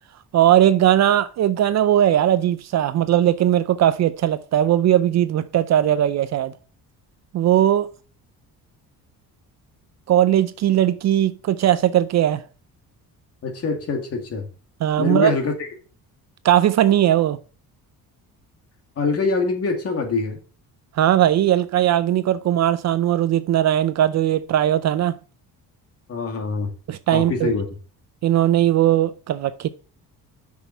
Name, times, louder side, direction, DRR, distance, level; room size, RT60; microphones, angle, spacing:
voice 1, 0.3-6.5 7.3-7.9 10.1-12.4 14.8-15.3 16.4-17.4 21.0-25.2 26.9-27.5 28.2-29.7, right 11 dB, 50° right, 0.5 m, -19 dB
voice 2, 13.4-14.5 15.0-15.7 19.0-20.4 26.1-26.7 27.1-27.6, left 4 dB, 40° left, 2.1 m, -24 dB
6.1 x 5.7 x 5.7 m
cardioid pair, 150°, 36 cm